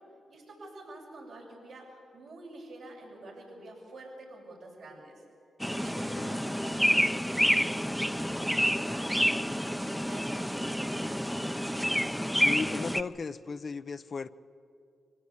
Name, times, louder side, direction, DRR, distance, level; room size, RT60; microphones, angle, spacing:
voice 1, 0.3-5.2 5.8-11.6, right 2 dB, 75° right, -3 dB, 7.5 m, -47 dB
sound 1, 5.6-13.0, equal, ahead, 0.8 m, -29 dB
voice 2, 5.9-6.4 12.3-14.3, left 4 dB, 55° left, 13 dB, 0.7 m, -36 dB
24.5 x 17.0 x 8.8 m, 2.4 s
supercardioid pair, 45°, 0 cm